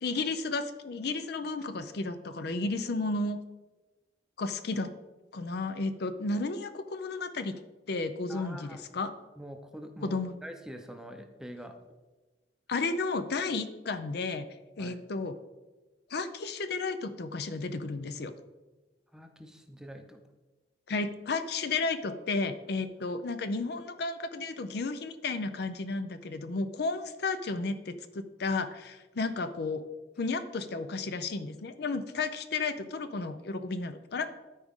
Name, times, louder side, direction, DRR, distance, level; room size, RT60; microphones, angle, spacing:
voice 1, 0.0-3.4 4.4-4.9 5.3-7.5 7.9-9.1 10.0-10.3 12.7-14.5 14.8-15.3 16.1-18.3 20.9-29.8 30.2-34.3, left 3 dB, 65° left, 11 dB, 0.5 m, -33 dB
voice 2, 8.3-8.8 9.4-11.7 14.8-15.0 19.1-20.2, equal, 5° right, 5 dB, 0.6 m, -45 dB
12.5 x 4.8 x 3.6 m, 1.2 s
head